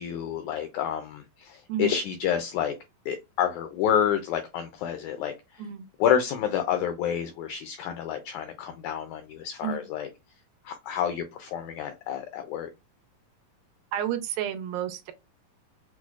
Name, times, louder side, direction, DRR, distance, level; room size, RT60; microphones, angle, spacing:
voice 1, 0.0-2.7 3.1-5.3 6.0-10.1 10.6-12.7, left 9 dB, 85° left, 1.7 m, -29 dB
voice 2, 13.9-15.1, right 9 dB, 85° right, 2.4 m, -31 dB
6.0 x 2.1 x 2.3 m
omnidirectional pair, 3.9 m